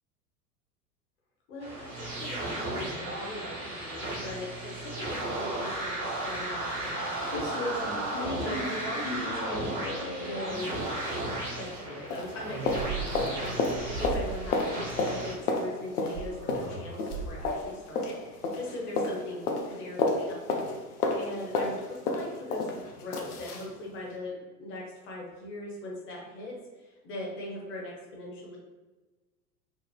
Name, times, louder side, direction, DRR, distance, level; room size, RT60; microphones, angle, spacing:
voice 1, 1.5-9.8 10.2-28.6, left 1 dB, 25° left, -2 dB, 0.7 m, -40 dB
sound 1, 1.6-15.3, right 1 dB, 80° right, 1.0 m, -35 dB
sound 2, 6.4-6.5 6.9-7.0 7.3-11.9 12.1-23.7 24.1-24.2, left 3 dB, 70° left, 0.5 m, -33 dB
sound 3, 12.3-14.7 16.1-17.6, right 4 dB, 40° right, 0.5 m, -38 dB
2.9 x 2.0 x 2.3 m, 1.2 s
figure-of-eight pair, 85°, 47 cm